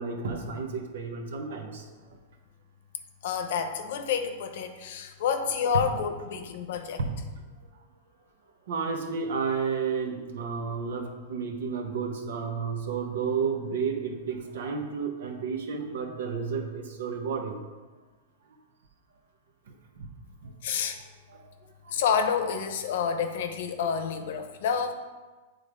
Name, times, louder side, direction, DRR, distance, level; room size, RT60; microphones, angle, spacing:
voice 1, 0.0-1.9 7.0-7.2 8.7-17.6 20.0-20.1 20.4-20.5 21.3-21.5 21.8-21.9, right 5 dB, 75° right, 4 dB, 1.0 m, -31 dB
voice 2, 3.2-7.0 20.6-21.0 21.9-24.9, left 6 dB, 65° left, 7 dB, 0.8 m, -29 dB
7.7 x 3.6 x 5.0 m, 1.3 s
hypercardioid pair, 125°, 0 cm